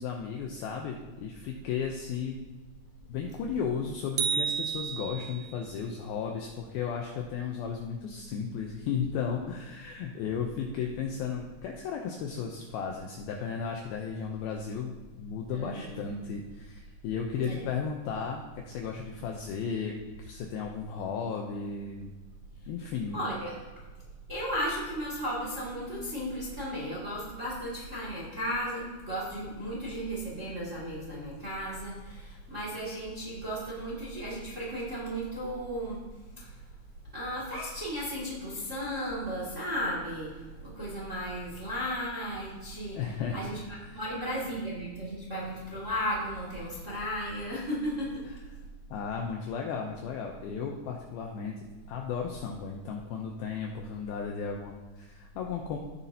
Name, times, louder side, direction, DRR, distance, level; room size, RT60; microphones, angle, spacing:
voice 1, 0.0-2.4 3.1-22.1 22.7-23.2 42.9-44.0 48.9-51.6 51.9-55.8, left 6 dB, 90° left, 1 dB, 2.1 m, -35 dB
sound 1, 4.2-5.6, right 6 dB, 80° right, 2.9 m, -31 dB
voice 2, 15.5-16.0 17.3-17.6 23.1-23.6 24.3-36.0 36.4-36.5 37.1-43.6 43.9-48.1, equal, 25° right, -5 dB, 1.6 m, -35 dB
16.5 x 7.1 x 2.8 m, 1.3 s
omnidirectional pair, 5.2 m